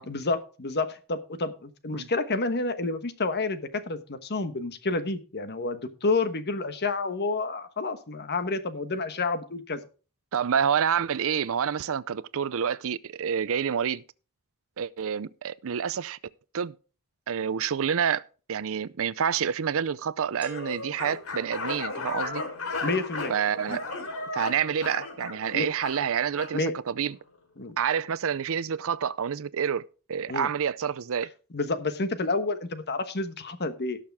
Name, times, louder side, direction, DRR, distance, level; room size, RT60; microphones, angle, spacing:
voice 1, 0.1-9.8 22.8-23.3 23.7-23.8 25.5-25.7 26.5-26.7 27.6-27.7 30.3-30.5 31.5-34.0, left 3 dB, 50° left, 1.2 m, -29 dB
voice 2, 10.3-14.0 14.8-16.2 16.5-16.7 17.3-18.2 18.5-22.4 23.3-23.8 24.3-27.2 27.8-31.3, right 7 dB, 65° right, 0.5 m, -28 dB
sound 1, 20.4-22.3, right 1 dB, 5° right, 2.9 m, -48 dB
sound 2, 20.5-26.6, left 3 dB, 70° left, 2.9 m, -35 dB
17.5 x 6.6 x 3.5 m
head